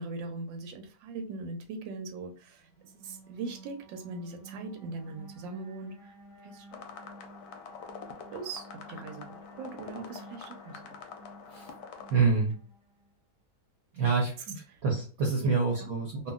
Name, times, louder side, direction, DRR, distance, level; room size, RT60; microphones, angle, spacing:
voice 1, 0.0-2.7 3.0-6.1 6.4-6.8 8.3-11.0 14.7-14.8 15.4-15.5 15.8-15.9, right 3 dB, 90° right, 5 dB, 1.3 m, -40 dB
sound 1, 2.6-13.1, right 2 dB, 85° left, 0.4 m, -52 dB
sound 2, 6.7-12.1, left 6 dB, 70° left, 1.0 m, -46 dB
voice 2, 12.1-12.5 13.9-16.3, right 4 dB, 65° right, -1 dB, 1.0 m, -27 dB
2.8 x 2.6 x 2.3 m, 0.38 s
omnidirectional pair, 2.0 m